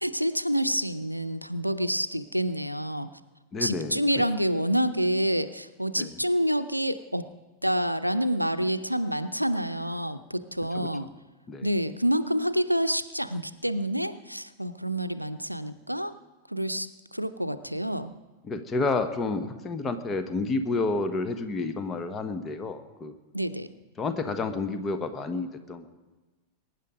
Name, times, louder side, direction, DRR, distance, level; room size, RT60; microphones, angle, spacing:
voice 1, 0.0-3.1 3.6-7.3 7.6-11.1 11.6-16.2 16.5-18.1 23.3-23.7, equal, 90° right, 11 dB, 0.6 m, -28 dB
voice 2, 3.5-4.2 6.0-6.1 10.7-10.9 11.5-11.7 18.4-23.1 24.0-25.9, left 3 dB, 20° left, 8 dB, 1.2 m, -30 dB
22.0 x 9.7 x 5.1 m, 1.2 s
figure-of-eight pair, 90°, 0 cm